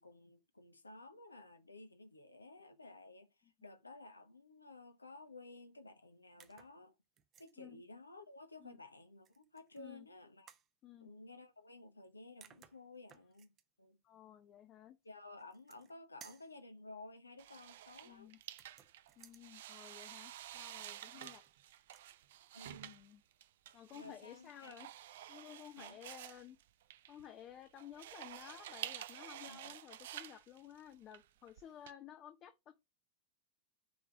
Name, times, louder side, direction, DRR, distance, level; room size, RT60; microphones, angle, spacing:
voice 1, 0.0-6.9 7.4-10.5 11.0-13.5 13.8-14.0 15.0-18.3 22.5-23.0 23.9-24.9 25.8-26.0 29.5-29.8, left 2 dB, 80° left, 1.0 m, -54 dB
sound 1, 6.4-6.8 7.2-7.5 9.2-9.8 10.5-10.7 12.0-12.1 12.4-13.6 15.4-15.9 16.2-16.6 18.5-19.4 21.0-21.5 21.8-22.1, right 9 dB, 30° right, 0.8 m, -61 dB
voice 2, 14.0-15.0 18.0-18.4 19.2-21.4 22.8-23.2 23.7-24.9 25.3-26.6 27.1-32.7, left 10 dB, 30° left, 0.7 m, -54 dB
sound 2, 17.4-31.9, right 12 dB, 55° right, 0.5 m, -50 dB
6.2 x 3.7 x 5.9 m
figure-of-eight pair, 90°, 0 cm